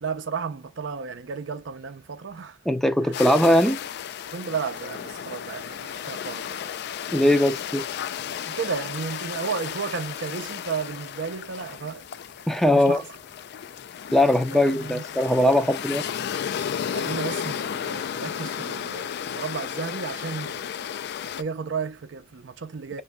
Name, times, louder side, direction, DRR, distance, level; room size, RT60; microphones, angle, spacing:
voice 1, 0.0-2.6 3.0-3.1 4.3-6.6 8.5-12.1 12.7-13.1 14.5-15.0 16.9-20.7 21.2-23.0, right 5 dB, 70° right, 0.6 m, -33 dB
voice 2, 2.7-3.8 7.1-7.9 12.5-13.0 14.1-16.0, left 1 dB, ahead, 0.5 m, -20 dB
sound 1, 3.1-21.4, left 8 dB, 60° left, 0.3 m, -34 dB
5.1 x 2.6 x 2.2 m
head